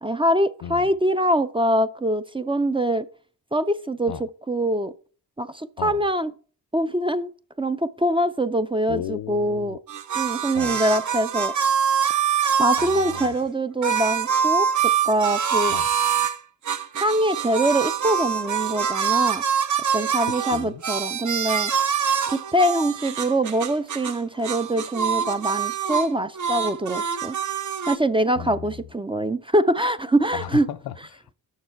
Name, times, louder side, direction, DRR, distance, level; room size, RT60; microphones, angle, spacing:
voice 1, 0.0-3.1 3.5-4.1 4.5-4.9 5.4-6.3 6.7-7.3 7.6-9.8 10.1-11.5 12.6-15.7 17.0-19.4 19.9-21.7 22.3-27.4 27.9-30.7, right 1 dB, 15° right, 0.4 m, -23 dB
voice 2, 8.9-9.8 10.5-10.8 12.8-13.3 15.7-15.9 20.3-20.8 28.4-28.9 30.3-31.3, left 10 dB, 75° left, 0.5 m, -35 dB
sound 1, 9.9-13.3 13.8-16.4 16.7-24.2 24.4-26.1 26.4-28.0, right 7 dB, 50° right, 0.7 m, -25 dB
6.7 x 6.2 x 4.5 m
cardioid pair, 60°, 37 cm